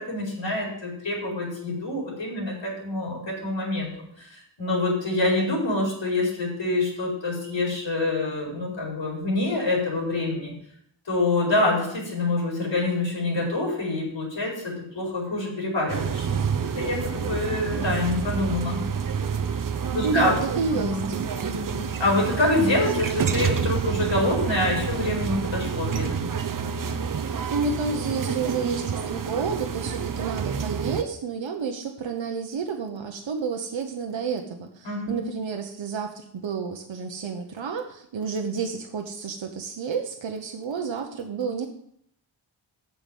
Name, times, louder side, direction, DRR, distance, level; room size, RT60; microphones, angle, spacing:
voice 1, 0.0-10.5 11.1-16.2 16.8-18.8 19.9-20.4 20.7-26.3 34.8-35.2, left 2 dB, 70° left, -3 dB, 4.7 m, -26 dB
sound 1, 15.9-31.0, right 7 dB, 45° right, 0.7 m, -28 dB
voice 2, 20.0-21.0 27.2-41.7, right 5 dB, 75° right, 3 dB, 1.0 m, -30 dB
7.5 x 6.9 x 7.2 m, 0.69 s
wide cardioid pair, 125°, 46 cm